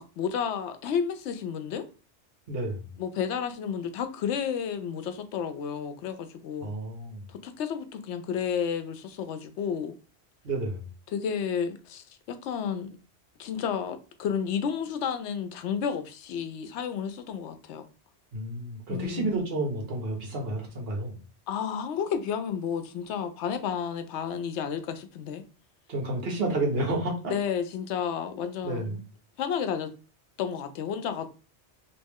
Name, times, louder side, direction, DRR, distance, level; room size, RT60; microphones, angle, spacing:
voice 1, 0.0-1.8 3.0-6.7 7.3-10.0 11.1-12.9 13.4-17.8 18.9-19.3 21.5-25.4 27.3-29.0 29.4-29.9 30.4-31.3, left 7 dB, 85° left, 0.9 m, -31 dB
voice 2, 2.5-2.9 6.6-7.2 10.4-10.9 18.3-21.2 25.9-27.3 28.6-29.0, right 2 dB, 60° right, 1.3 m, -30 dB
3.1 x 2.9 x 3.5 m
omnidirectional pair, 1.1 m